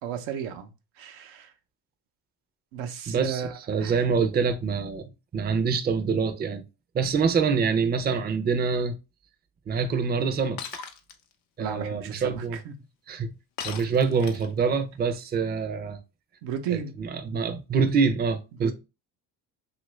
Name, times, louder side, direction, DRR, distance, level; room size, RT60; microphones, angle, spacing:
voice 1, 0.0-1.5 2.7-4.0 11.6-12.7 16.4-16.9 18.5-18.7, right 8 dB, 90° right, 0.7 m, -34 dB
voice 2, 3.1-3.4 3.7-5.0 5.3-6.6 6.9-9.0 9.7-10.6 11.6-12.6 13.1-13.3 13.6-16.0 16.7-18.7, right 5 dB, 25° right, 0.4 m, -25 dB
Shatter, 10.6-11.2 13.6-14.6, left 7 dB, 90° left, 0.7 m, -37 dB
2.9 x 2.5 x 3.0 m
supercardioid pair, 80°, 45 cm